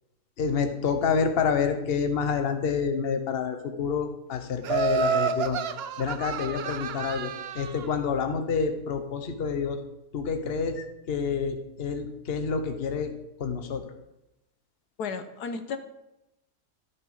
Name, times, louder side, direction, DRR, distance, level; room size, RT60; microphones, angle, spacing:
voice 1, 0.4-5.6 6.0-9.8 10.1-13.1 13.4-13.8, left 6 dB, 45° left, 6 dB, 1.1 m, -28 dB
Laughter, 4.6-7.9, right 6 dB, 75° right, 0.5 m, -29 dB
voice 2, 15.0-15.8, left 5 dB, 80° left, 8 dB, 1.4 m, -33 dB
14.5 x 5.5 x 5.5 m, 0.92 s
omnidirectional pair, 1.7 m